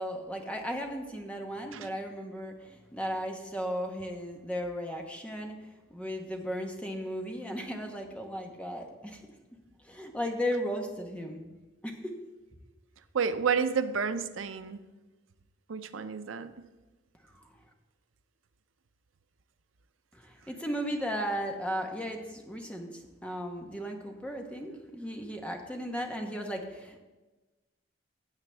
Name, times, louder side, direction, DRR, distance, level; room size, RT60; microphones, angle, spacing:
voice 1, 0.0-9.3 9.8-11.6 11.8-12.1 17.2-17.5 20.1-27.0, equal, 5° left, 2 dB, 1.0 m, -36 dB
voice 2, 13.1-14.8 15.7-16.5, right 6 dB, 90° right, 11 dB, 0.6 m, -30 dB
15.5 x 8.0 x 3.4 m, 1.2 s
head